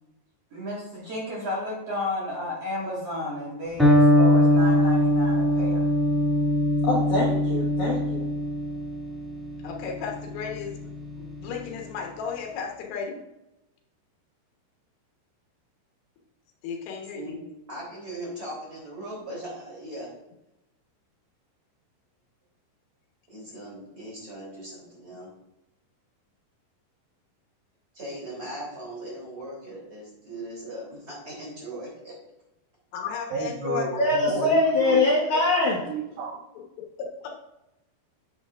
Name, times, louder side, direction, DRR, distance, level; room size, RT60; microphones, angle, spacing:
voice 1, 0.5-5.9, left 1 dB, 45° right, -5 dB, 2.4 m, -32 dB
Electric guitar, 3.8-11.6, equal, ahead, 0.7 m, -22 dB
voice 2, 6.8-8.3 34.0-35.8, left 2 dB, 65° left, -4 dB, 2.0 m, -23 dB
voice 3, 9.6-10.9 11.2-13.2 16.6-17.3 32.9-34.5 36.8-37.4, left 6 dB, 80° left, 1 dB, 3.3 m, -34 dB
voice 4, 17.7-20.1 23.3-25.3 27.9-32.2, right 1 dB, 25° right, -4 dB, 3.4 m, -39 dB
voice 5, 33.3-36.4, right 4 dB, 85° right, 1 dB, 1.7 m, -32 dB
10.5 x 7.4 x 2.5 m, 0.91 s
omnidirectional pair, 4.8 m